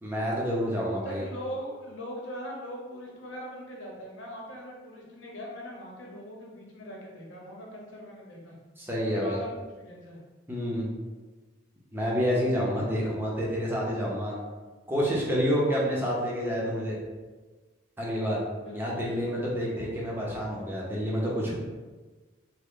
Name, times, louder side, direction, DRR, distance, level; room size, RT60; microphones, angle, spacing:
voice 1, 0.0-1.2 8.8-9.4 10.5-10.9 11.9-14.4 14.9-17.0 18.0-18.4 18.7-21.5, equal, 10° right, -5 dB, 0.7 m, -28 dB
voice 2, 0.9-8.5 9.0-9.5 9.8-10.2 18.6-19.5 19.8-19.9, equal, 90° left, -2 dB, 0.9 m, -41 dB
3.6 x 2.1 x 3.6 m, 1.3 s
head